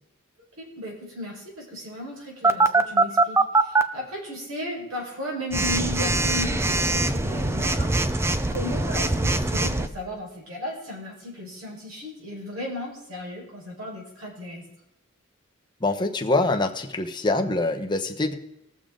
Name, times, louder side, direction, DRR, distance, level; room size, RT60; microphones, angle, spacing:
voice 1, 0.6-14.6, left 1 dB, 80° right, -2 dB, 4.8 m, -35 dB
Telephone, 2.4-3.8 5.5-9.9, right 2 dB, 10° right, 0.5 m, -22 dB
voice 2, 15.8-18.3, left 2 dB, 20° left, 3 dB, 1.0 m, -24 dB
20.0 x 7.0 x 3.8 m, 0.89 s
head